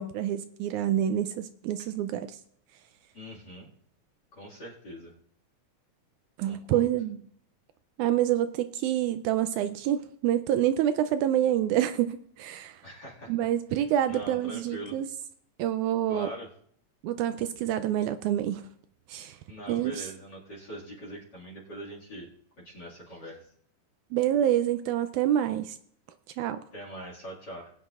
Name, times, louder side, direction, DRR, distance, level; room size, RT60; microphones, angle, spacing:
voice 1, 0.0-2.4 6.4-7.2 8.0-12.8 13.3-15.1 15.6-16.3 17.0-18.7 19.1-19.4 19.7-20.1 24.1-25.8 26.4-26.6, right 11 dB, 80° right, 10 dB, 1.9 m, -27 dB
voice 2, 3.1-3.7 4.3-5.1 6.4-6.9 12.8-13.3 14.1-15.0 16.1-16.5 19.5-22.3 22.6-23.4 26.7-27.7, right 1 dB, 35° left, -3 dB, 2.3 m, -42 dB
20.5 x 9.2 x 2.4 m, 0.65 s
omnidirectional pair, 3.6 m